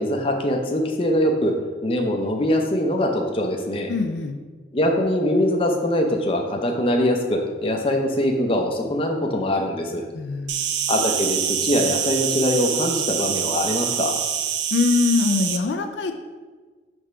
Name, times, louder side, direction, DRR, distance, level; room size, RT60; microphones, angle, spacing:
voice 1, 0.0-1.5 1.8-3.9 4.7-10.0 10.9-14.2, left 1 dB, 30° left, 2 dB, 0.6 m, -22 dB
voice 2, 3.9-4.4 10.1-10.7 14.7-16.1, left 4 dB, 80° left, 6 dB, 0.4 m, -23 dB
Insect, 10.5-15.6, right 8 dB, 80° right, 0.5 m, -25 dB
5.1 x 3.5 x 5.5 m, 1.4 s
head